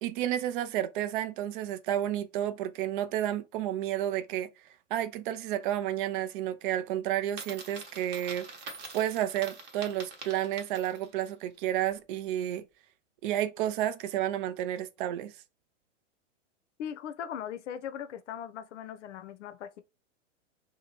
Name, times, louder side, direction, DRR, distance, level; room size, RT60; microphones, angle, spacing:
voice 1, 0.0-4.5 4.9-12.7 13.2-15.3, right 12 dB, 45° right, 0.4 m, -31 dB
Coin (dropping), 7.3-11.2, right 4 dB, 30° right, 0.9 m, -45 dB
voice 2, 16.8-19.8, left 9 dB, 70° left, 0.6 m, -39 dB
2.7 x 2.2 x 2.9 m
hypercardioid pair, 105°, 38 cm